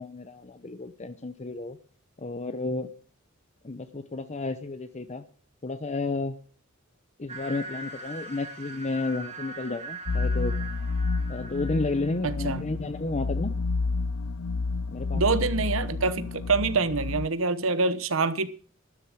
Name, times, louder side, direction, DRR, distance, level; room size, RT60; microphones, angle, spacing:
voice 1, 0.0-1.8 2.2-2.9 3.6-5.2 5.6-6.4 7.2-10.5 11.3-13.5 14.9-15.2, left 2 dB, 35° left, 0.8 m, -32 dB
sound 1, 7.3-12.4, right 1 dB, 30° right, 2.5 m, -41 dB
sound 2, 10.1-17.3, left 3 dB, 85° left, 0.6 m, -30 dB
voice 2, 12.2-12.6 15.1-18.5, right 4 dB, 70° right, 1.0 m, -26 dB
12.5 x 11.5 x 6.3 m
head